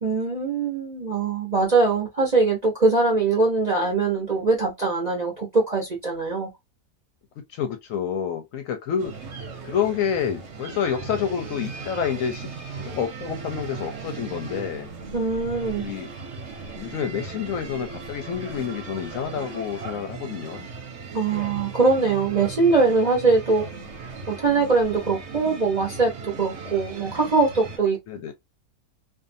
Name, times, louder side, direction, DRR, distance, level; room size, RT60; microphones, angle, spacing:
voice 1, 0.0-6.5 15.1-15.9 21.1-23.6 24.3-28.0, right 3 dB, 40° right, 0.7 m, -22 dB
voice 2, 7.4-9.1 9.6-12.5 12.8-14.9 15.7-16.1 16.8-20.7 28.1-28.3, left 8 dB, 70° left, 0.9 m, -28 dB
sound 1, 9.0-27.8, right 4 dB, 55° right, 1.0 m, -37 dB
2.6 x 2.4 x 2.5 m
omnidirectional pair, 1.6 m